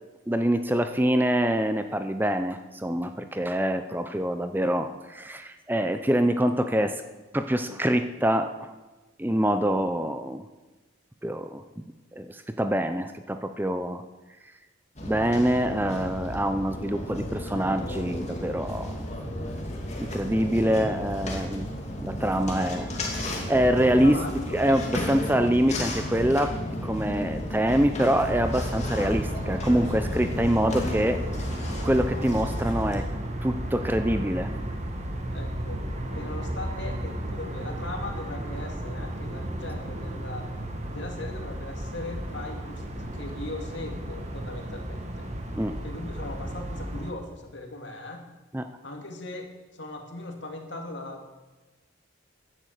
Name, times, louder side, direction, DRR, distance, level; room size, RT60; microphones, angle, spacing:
voice 1, 0.3-7.0 7.3-8.7 9.2-10.4 11.2-11.9 12.1-14.0 15.0-19.1 20.0-21.7 22.0-24.2 24.5-26.5 26.8-31.2 31.8-33.1 33.4-34.5 45.6-45.8 48.5-48.7, equal, 10° right, 8 dB, 0.6 m, -25 dB
sound 1, 15.0-33.1, left 1 dB, 35° left, 2.5 m, -33 dB
voice 2, 23.8-24.6 35.3-35.8 36.1-40.5 40.9-45.3 45.8-48.3 48.8-51.3, left 2 dB, 65° left, 3 dB, 2.5 m, -39 dB
sound 2, 28.1-47.1, right 1 dB, 35° right, 1.7 m, -34 dB
15.5 x 11.0 x 6.6 m, 1.2 s
head